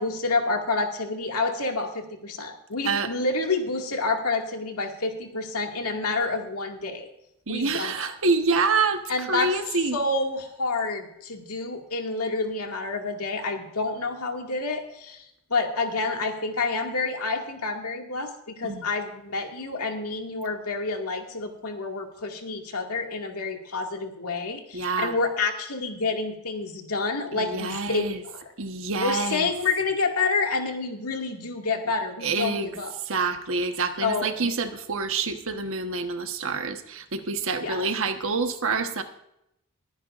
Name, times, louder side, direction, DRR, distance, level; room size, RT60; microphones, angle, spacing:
voice 1, 0.0-7.1 7.5-8.1 9.1-9.6 9.9-28.5 29.0-32.9 34.0-34.3 37.6-37.9, left 3 dB, 90° left, 2 dB, 2.1 m, -28 dB
voice 2, 7.5-10.0 18.6-18.8 24.7-25.2 27.3-28.2 28.6-29.5 32.2-32.7 33.1-39.0, right 4 dB, 65° right, 7 dB, 1.2 m, -27 dB
22.0 x 10.5 x 2.5 m, 0.81 s
head